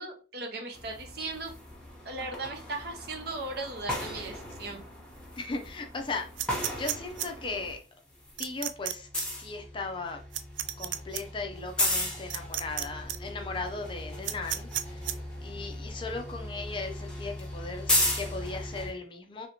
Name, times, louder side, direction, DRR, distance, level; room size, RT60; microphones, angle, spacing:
voice 1, 0.0-1.5 2.0-4.8, right 2 dB, 55° right, 3 dB, 0.8 m, -37 dB
sound 1, 0.7-7.8 8.1-18.9, left 1 dB, 5° left, 0.8 m, -36 dB
voice 2, 5.4-7.8 8.4-10.2 10.8-19.5, left 3 dB, 25° left, 4 dB, 0.4 m, -37 dB
sound 2, 6.4-7.3 8.4-8.9 9.2-9.3 10.3-11.2 12.3-12.8 13.1-13.2 14.2-15.1, right 12 dB, 80° right, 0.3 m, -32 dB
3.2 x 2.8 x 2.8 m, 0.36 s
head